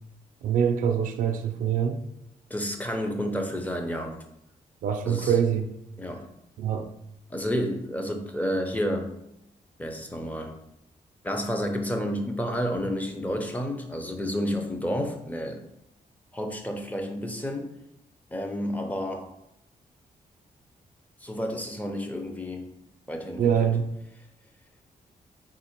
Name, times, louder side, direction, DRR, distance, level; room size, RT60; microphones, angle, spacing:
voice 1, 0.4-2.0 4.8-5.7 6.6-6.9 23.4-23.9, right 8 dB, 70° right, 0.4 m, -24 dB
voice 2, 2.5-4.1 5.0-5.3 6.0-6.2 7.3-9.1 9.8-10.5 11.2-15.6 16.3-17.7 18.3-19.2 21.2-22.7 23.1-23.7, equal, 10° left, 0.5 m, -30 dB
3.7 x 2.8 x 4.4 m
cardioid pair, 120°, 14 cm